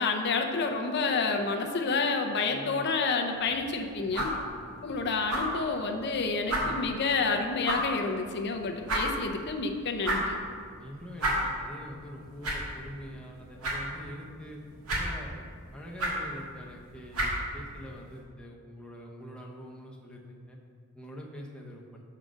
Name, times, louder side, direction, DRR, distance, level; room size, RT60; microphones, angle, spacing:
voice 1, 0.0-4.3 4.8-10.4, left 4 dB, 50° left, 4 dB, 0.6 m, -29 dB
voice 2, 2.5-2.9 4.0-4.8 6.6-6.9 10.8-14.6 14.9-15.4 15.7-20.6 20.9-22.0, equal, 5° left, -2 dB, 0.7 m, -45 dB
sound 1, 3.4-18.2, right 1 dB, 80° right, 1.5 m, -35 dB
6.4 x 3.8 x 6.1 m, 2.1 s
head